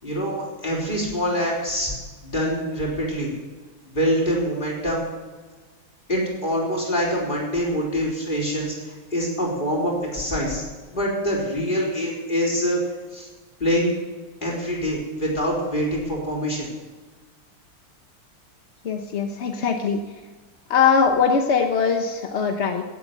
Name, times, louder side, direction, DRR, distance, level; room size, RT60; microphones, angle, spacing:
voice 1, 0.0-1.9 2.2-3.3 3.9-5.0 6.1-10.6 10.9-12.8 13.1-13.3 13.6-13.9 14.4-16.7, equal, 20° left, -3 dB, 4.5 m, -25 dB
voice 2, 18.8-20.0 20.7-22.8, left 6 dB, 50° left, 5 dB, 0.8 m, -21 dB
16.5 x 8.3 x 8.1 m, 1.4 s
omnidirectional pair, 2.4 m